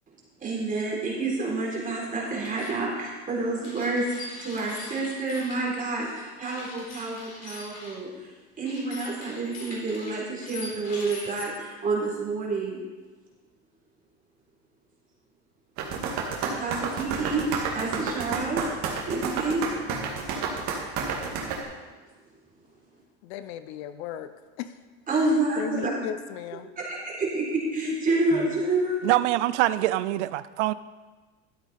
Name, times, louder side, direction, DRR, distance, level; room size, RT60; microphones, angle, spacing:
voice 1, 0.4-4.0 4.4-8.3 8.6-12.8 16.5-18.6 19.1-19.7 25.1-25.9 26.8-29.0, right 3 dB, 25° right, -3 dB, 3.7 m, -28 dB
sound 1, 2.4-2.8 3.6-5.6 6.4-8.0 8.6-11.4, left 3 dB, 50° left, 3.9 m, -42 dB
sound 2, 15.8-21.6, right 5 dB, 55° right, 2.1 m, -30 dB
voice 2, 23.2-24.3 24.6-24.7 25.6-26.7, left 10 dB, 75° left, 11 dB, 0.7 m, -35 dB
voice 3, 29.0-30.7, right 16 dB, 90° right, 16 dB, 0.6 m, -24 dB
13.0 x 8.1 x 4.3 m, 1.3 s
supercardioid pair, 120°, 34 cm